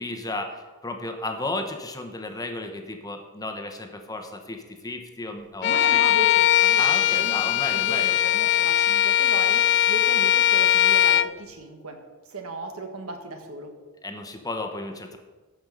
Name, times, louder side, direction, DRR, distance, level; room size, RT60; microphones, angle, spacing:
voice 1, 0.0-6.0 6.8-8.3 8.6-8.7 14.0-15.2, left 2 dB, 15° left, 5 dB, 1.0 m, -33 dB
Bowed string instrument, 5.6-11.3, left 12 dB, 55° left, 0.4 m, -20 dB
voice 2, 5.6-7.4 7.7-12.0 12.3-13.7, right 1 dB, 80° right, 4 dB, 1.5 m, -36 dB
13.5 x 5.4 x 5.3 m, 1.3 s
head